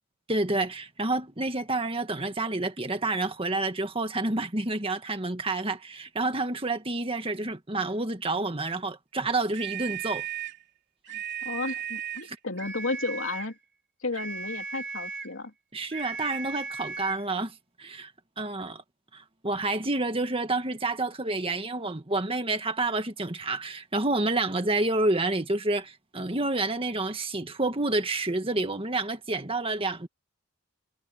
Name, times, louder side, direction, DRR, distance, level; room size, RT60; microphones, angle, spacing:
voice 1, 0.3-10.2 12.2-12.4 15.7-18.1 18.4-18.8 19.1-30.1, right 2 dB, 25° right, 1.8 m, -29 dB
sound 1, 9.5-10.6 11.0-12.3 12.6-13.5 14.1-15.4 15.9-17.3, right 7 dB, 55° right, 3.0 m, -36 dB
voice 2, 11.1-13.6 14.0-15.5, left 3 dB, 65° left, 3.2 m, -33 dB
head